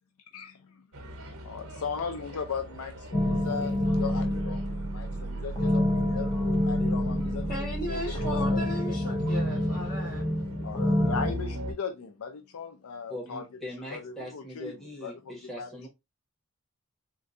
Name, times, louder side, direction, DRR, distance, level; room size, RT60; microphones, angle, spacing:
voice 1, 0.3-0.9 1.2-9.1 10.6-13.5 13.9-15.9, left 5 dB, 80° left, 0.4 m, -38 dB
sound 1, 0.9-11.7, equal, 80° right, 0.8 m, -41 dB
sound 2, 3.1-11.3, left 1 dB, 20° left, 0.5 m, -28 dB
sound 3, 3.1-8.8, right 2 dB, 55° right, 0.3 m, -37 dB
voice 2, 7.5-10.3, equal, 40° left, 1.8 m, -36 dB
voice 3, 13.1-15.9, left 1 dB, ahead, 1.1 m, -41 dB
3.7 x 2.2 x 2.5 m
head